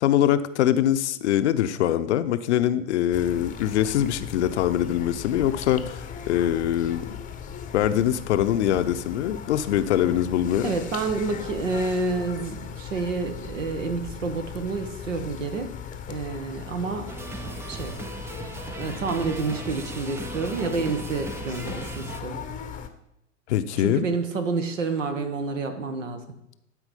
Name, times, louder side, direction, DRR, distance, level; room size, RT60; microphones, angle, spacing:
voice 1, 0.0-7.1 7.7-10.7 23.5-24.1, left 11 dB, 60° left, 12 dB, 0.7 m, -23 dB
sound 1, 3.1-22.9, left 7 dB, 20° left, 0.8 m, -38 dB
voice 2, 10.6-15.7 16.1-17.1 17.7-17.9 18.8-22.4 23.8-26.2, right 4 dB, 75° right, 8 dB, 1.4 m, -29 dB
sound 2, 17.1-22.2, right 3 dB, 5° right, 0.4 m, -38 dB
12.0 x 4.7 x 5.3 m, 0.80 s
figure-of-eight pair, 95°, 38 cm